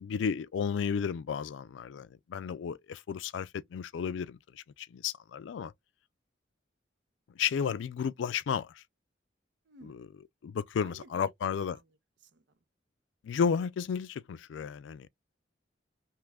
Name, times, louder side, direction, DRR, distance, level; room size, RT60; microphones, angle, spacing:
voice 1, 0.0-5.7 7.4-8.8 10.4-11.8 13.2-15.1, left 7 dB, 90° left, 0.3 m, -33 dB
voice 2, 9.7-10.0 10.8-12.0 12.2-12.6, right 3 dB, 75° right, 0.6 m, -55 dB
3.0 x 2.3 x 3.3 m
head